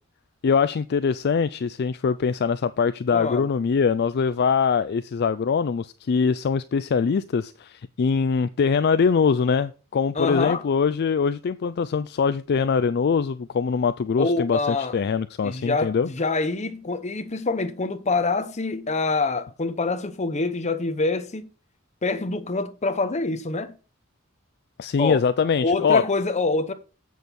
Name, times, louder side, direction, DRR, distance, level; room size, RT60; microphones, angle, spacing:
voice 1, 0.4-16.1 24.8-26.0, left 5 dB, 50° left, 0.4 m, -23 dB
voice 2, 3.1-3.5 10.1-10.6 14.2-15.0 15.4-21.5 22.0-23.8 25.0-25.2 25.6-26.7, left 3 dB, 35° left, 0.8 m, -25 dB
7.9 x 6.4 x 5.2 m
head